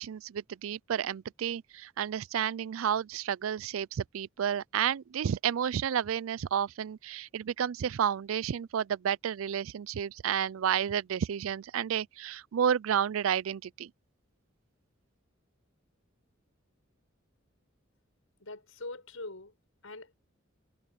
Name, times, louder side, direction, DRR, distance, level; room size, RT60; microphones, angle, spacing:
voice 1, 0.0-13.9, right 8 dB, 85° right, 0.4 m, -31 dB
voice 2, 18.4-19.5 19.8-20.1, left 2 dB, 90° left, 6.3 m, -43 dB
head